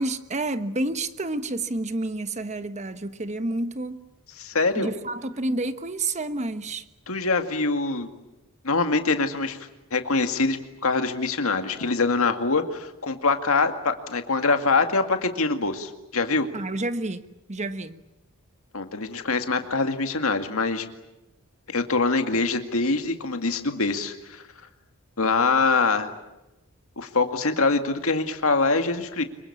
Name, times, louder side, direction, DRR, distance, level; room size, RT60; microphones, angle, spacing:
voice 1, 0.0-4.0 4.8-6.8 16.5-18.0, right 2 dB, 30° right, 1.2 m, -29 dB
voice 2, 4.4-4.9 7.1-8.1 8.6-9.6 9.9-16.5 18.7-20.9 21.7-24.4 25.2-26.1 27.0-29.2, left 3 dB, 70° left, 2.2 m, -24 dB
25.5 x 23.5 x 8.6 m
head